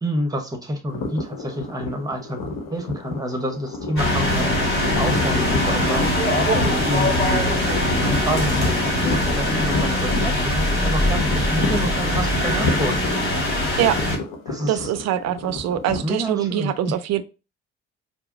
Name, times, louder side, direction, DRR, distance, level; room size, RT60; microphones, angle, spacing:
voice 1, 0.0-2.4 2.7-6.1 6.5-7.4 7.9-13.0 14.5-14.9 16.0-16.9, equal, 10° right, 1.0 m, -28 dB
sound 1, 0.9-16.0, left 3 dB, 60° left, 1.0 m, -30 dB
sound 2, 4.0-14.2, left 1 dB, 35° left, 1.9 m, -22 dB
voice 2, 14.7-17.2, right 11 dB, 45° right, 0.5 m, -23 dB
4.7 x 2.0 x 3.7 m
figure-of-eight pair, 45°, 36 cm